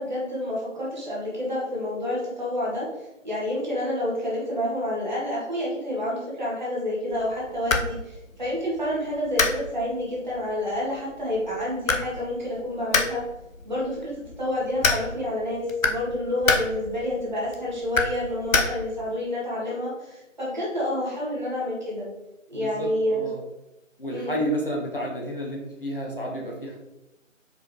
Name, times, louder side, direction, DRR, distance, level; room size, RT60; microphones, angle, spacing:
voice 1, 0.0-13.2 13.6-22.1 22.5-23.3 24.1-24.4, left 1 dB, 35° right, -6 dB, 1.4 m, -29 dB
sound 1, 7.1-19.1, left 3 dB, 85° left, 0.7 m, -30 dB
voice 2, 22.5-23.4 24.0-26.8, equal, 45° left, -2 dB, 0.8 m, -31 dB
4.7 x 2.9 x 3.1 m, 0.95 s
figure-of-eight pair, 165°, 39 cm